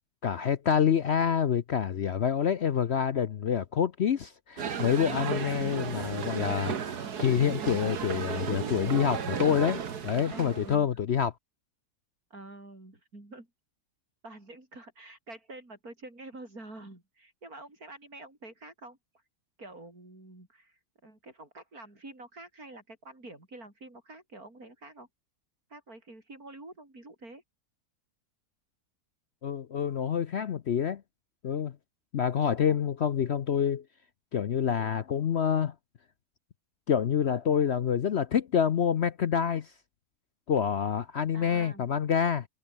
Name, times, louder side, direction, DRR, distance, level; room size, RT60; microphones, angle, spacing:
voice 1, 0.2-11.3 29.4-31.0 31.4-31.7 32.1-33.8 34.3-35.7 36.9-39.7 40.5-42.5, left 8 dB, 55° left, 0.9 m, -27 dB
sound 1, 4.6-10.8, right 7 dB, 85° right, 2.1 m, -34 dB
voice 2, 9.2-9.6 10.0-11.0 12.3-13.5 14.2-19.0 19.6-25.1 25.7-27.4 41.3-41.9, right 2 dB, 65° right, 7.1 m, -47 dB
omnidirectional pair, 1.6 m